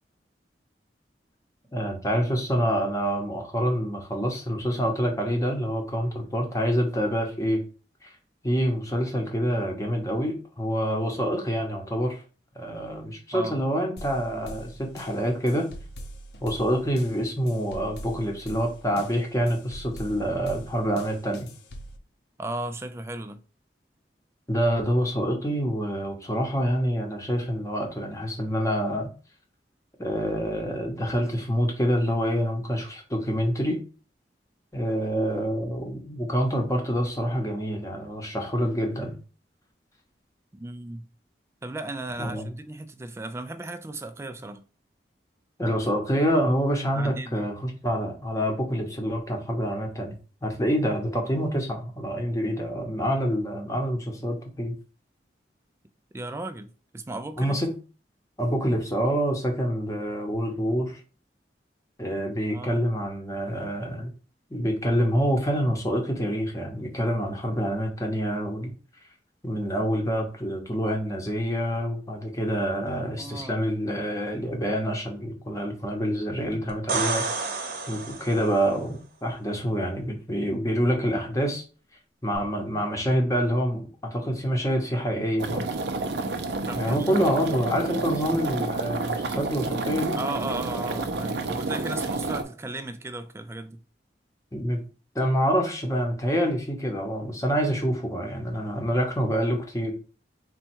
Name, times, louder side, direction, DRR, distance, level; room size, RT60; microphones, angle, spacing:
voice 1, 1.7-7.6 8.0-8.1 8.4-12.2 12.6-15.7 16.4-21.5 24.5-29.1 30.0-33.8 34.7-39.2 42.2-42.5 45.6-50.1 50.4-54.7 57.4-57.7 58.4-61.0 62.0-64.1 64.5-68.7 69.4-77.2 77.9-81.6 82.2-85.7 86.8-90.2 94.5-94.8 95.1-99.9, equal, 20° left, 0.8 m, -26 dB
sound 1, 14.0-22.0, equal, 70° left, 0.6 m, -43 dB
voice 2, 22.4-23.4 40.5-41.1 41.6-44.6 46.9-47.5 56.1-57.6 62.5-63.0 73.0-73.6 86.7-87.1 90.2-93.8, right 2 dB, 15° right, 0.3 m, -36 dB
sound 2, 76.7-78.6 82.3-82.4, right 4 dB, 55° right, 0.9 m, -30 dB
sound 3, 85.4-92.4, right 3 dB, 75° right, 0.6 m, -30 dB
4.1 x 2.2 x 4.4 m
head